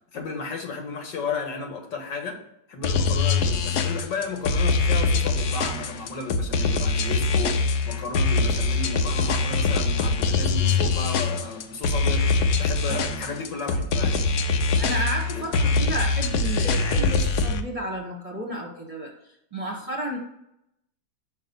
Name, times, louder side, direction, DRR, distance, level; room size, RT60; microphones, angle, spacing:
voice 1, 0.1-2.4 2.7-14.3 15.3-15.5, left 3 dB, 90° left, 3 dB, 2.0 m, -33 dB
sound 1, 2.8-17.6, left 3 dB, 70° left, 1.2 m, -23 dB
voice 2, 14.8-19.1 19.5-20.2, right 1 dB, 25° right, -1 dB, 1.0 m, -32 dB
5.8 x 5.3 x 5.3 m, 0.80 s
omnidirectional pair, 1.9 m